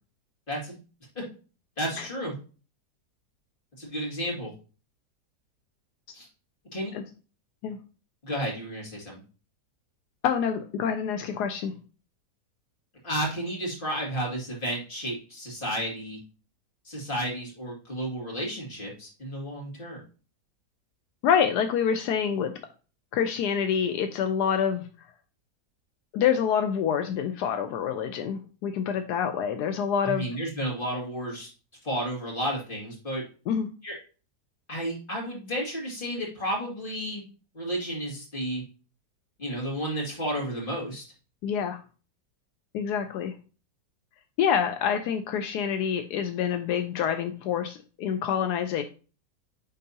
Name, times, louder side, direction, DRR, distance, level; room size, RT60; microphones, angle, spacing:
voice 1, 1.8-2.3 3.8-4.5 6.1-6.3 6.7-6.9 8.2-9.2 13.0-16.2 16.8-20.0 30.0-31.5 31.8-33.2 33.8-34.0 34.7-37.2 37.5-38.6 39.4-41.0, equal, 30° left, -3 dB, 2.4 m, -32 dB
voice 2, 10.2-11.7 21.2-22.5 23.1-24.9 26.1-30.2 33.5-33.7 41.4-41.8 42.7-43.3 44.4-48.8, left 8 dB, 80° left, 7 dB, 1.2 m, -26 dB
9.1 x 3.9 x 2.7 m, 0.36 s
omnidirectional pair, 1.7 m